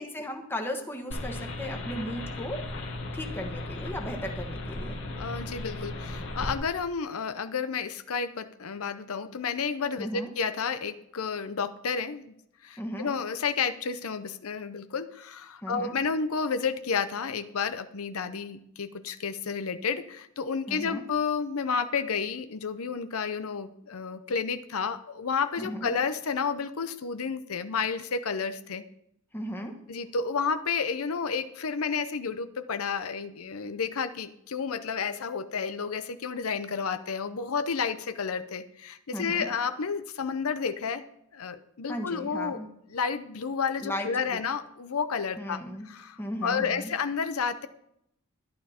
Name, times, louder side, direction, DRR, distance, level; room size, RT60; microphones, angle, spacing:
voice 1, 0.0-2.7 3.1-5.0 10.0-10.3 12.8-13.1 15.6-15.9 20.7-21.0 25.6-25.9 29.3-29.8 39.1-39.5 41.9-42.7 43.8-44.4 45.4-45.9 46.2-46.9, equal, 10° left, 3 dB, 1.2 m, -36 dB
sound 1, 1.1-6.5, left 2 dB, 60° left, 1.8 m, -36 dB
voice 2, 5.2-12.3 12.6-28.8 29.9-41.0 41.3-42.6 42.9-45.6 45.9-47.7, left 5 dB, 80° left, 10 dB, 0.6 m, -31 dB
12.0 x 11.5 x 4.3 m, 0.77 s
head